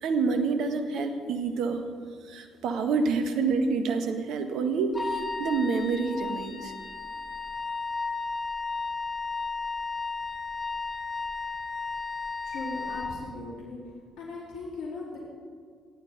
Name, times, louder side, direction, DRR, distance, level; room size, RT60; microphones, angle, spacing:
voice 1, 0.0-1.8 2.2-6.7, right 4 dB, 65° right, 7 dB, 1.7 m, -27 dB
Wind instrument woodwind instrument, 4.9-13.1, left 4 dB, 25° left, 4.1 m, -34 dB
voice 2, 12.4-13.8 14.2-15.2, left 3 dB, 70° left, -4 dB, 4.2 m, -38 dB
29.0 x 11.5 x 4.0 m, 2.1 s
hypercardioid pair, 50°, 0 cm